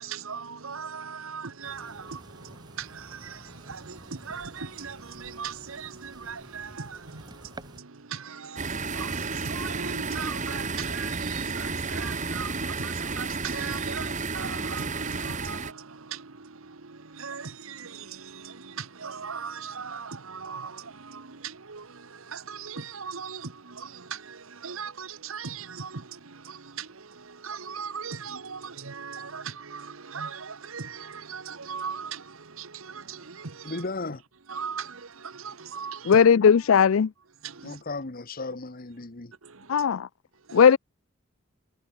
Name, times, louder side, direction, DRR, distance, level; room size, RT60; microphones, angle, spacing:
voice 1, 0.0-33.8 34.5-36.2 37.4-37.8 39.4-39.9 40.4-40.7, right 6 dB, 80° right, 1.3 m, -39 dB
sound 1, 1.6-7.8, right 1 dB, 20° right, 4.9 m, -49 dB
sound 2, 8.6-15.7, right 4 dB, 35° right, 1.9 m, -32 dB
voice 2, 33.6-34.2 37.6-39.3, left 3 dB, 45° left, 1.3 m, -35 dB
voice 3, 36.1-37.1 39.7-40.1 40.5-40.8, left 7 dB, 75° left, 0.4 m, -17 dB
head